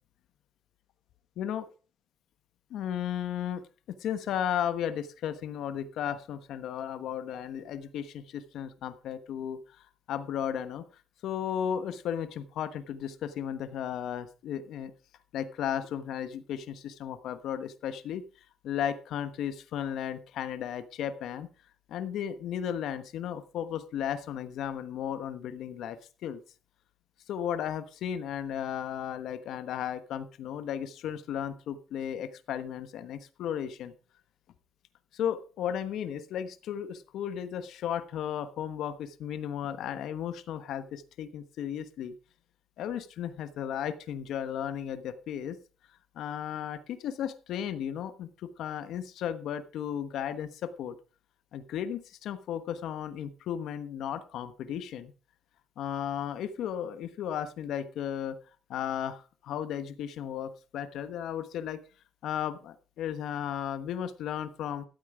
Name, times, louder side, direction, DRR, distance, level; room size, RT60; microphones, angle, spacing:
voice 1, 1.4-1.7 2.7-3.6 3.9-9.6 10.1-10.8 11.2-14.9 15.3-18.2 18.6-21.5 21.9-26.4 27.3-33.9 35.1-42.1 42.8-45.6 46.2-51.0 51.5-55.1 55.8-58.4 58.7-61.8 62.2-64.8, left 9 dB, 80° left, 11 dB, 1.2 m, -34 dB
13.0 x 8.7 x 4.9 m, 0.35 s
cardioid pair, 90°, 0 cm